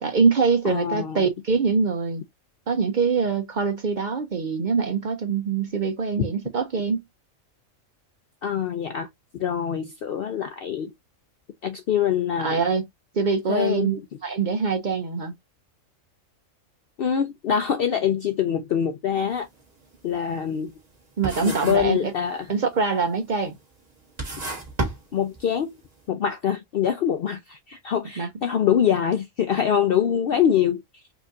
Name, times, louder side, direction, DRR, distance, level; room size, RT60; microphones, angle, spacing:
voice 1, 0.0-2.2 2.7-7.0 12.4-12.8 13.1-15.3 21.2-22.1 22.5-23.5 28.2-28.3, right 5 dB, 60° right, 0.5 m, -24 dB
voice 2, 0.6-1.2 8.4-9.1 9.4-10.9 11.6-12.7 13.5-13.9 17.0-19.5 20.0-20.7 21.4-22.5 25.1-25.7 26.1-30.8, left 8 dB, 65° left, 0.6 m, -24 dB
sound 1, 19.3-19.5 19.9-21.0 21.2-22.0 22.3-22.8 23.5-23.6 24.0-25.7, right 2 dB, 30° right, 1.5 m, -31 dB
4.5 x 2.6 x 2.4 m
omnidirectional pair, 1.4 m